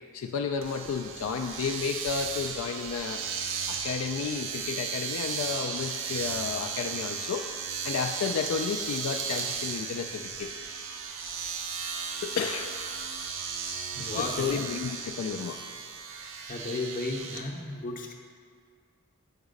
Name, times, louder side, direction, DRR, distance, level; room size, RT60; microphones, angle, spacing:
voice 1, 0.1-3.2 3.7-7.5 7.8-10.5 12.2-12.8 14.1-15.6, left 6 dB, 70° left, 4 dB, 0.3 m, -32 dB
Domestic sounds home sounds, 0.6-17.4, right 6 dB, 60° right, 0.6 m, -35 dB
voice 2, 14.0-14.5 16.5-18.2, left 3 dB, 40° left, 2 dB, 0.7 m, -34 dB
7.2 x 4.8 x 5.2 m, 2.1 s
head